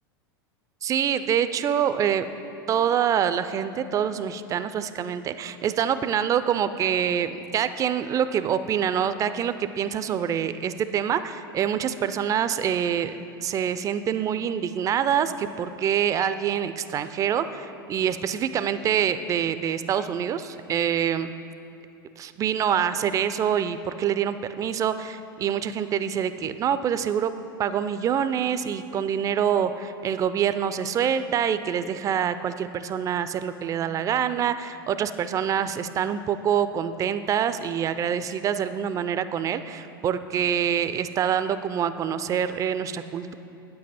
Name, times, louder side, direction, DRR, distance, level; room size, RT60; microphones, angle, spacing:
voice 1, 0.8-2.3 2.7-13.1 13.4-21.3 22.2-27.3 27.6-43.3, right 8 dB, 30° right, 12 dB, 0.4 m, -26 dB
8.9 x 7.6 x 4.3 m, 2.8 s
hypercardioid pair, 90°, 12 cm